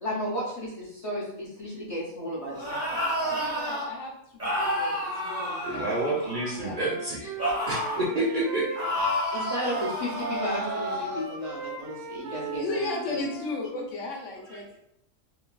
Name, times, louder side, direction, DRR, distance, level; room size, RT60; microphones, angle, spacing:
voice 1, 0.0-3.4 9.3-13.3, left 1 dB, 40° left, -5 dB, 0.5 m, -34 dB
sound 1, 2.5-3.9 4.4-6.7 7.4-8.1 8.7-11.2, equal, 15° right, 0.8 m, -30 dB
voice 2, 3.3-5.9 6.5-6.8 12.6-14.8, left 2 dB, 70° left, -1 dB, 1.0 m, -35 dB
voice 3, 5.6-7.4 7.7-8.7, right 1 dB, 55° right, -5 dB, 0.5 m, -28 dB
Wind instrument woodwind instrument, 6.7-13.6, right 5 dB, 85° right, 1.1 m, -38 dB
3.2 x 2.3 x 2.2 m, 0.75 s
omnidirectional pair, 1.4 m